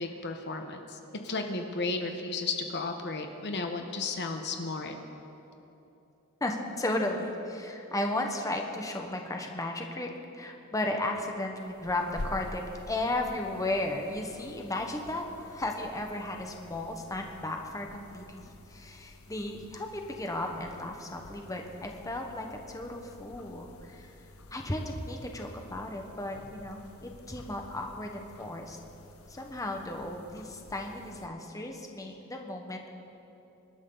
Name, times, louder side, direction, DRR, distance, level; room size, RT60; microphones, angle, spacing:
voice 1, 0.0-4.9, left 3 dB, 50° left, 5 dB, 1.1 m, -34 dB
voice 2, 6.4-12.6 12.9-24.1 24.5-28.8 29.3-32.9, left 1 dB, 15° left, 2 dB, 1.2 m, -35 dB
sound 1, 11.6-31.3, left 2 dB, 75° left, 1.0 m, -49 dB
26.5 x 12.5 x 3.9 m, 3.0 s
head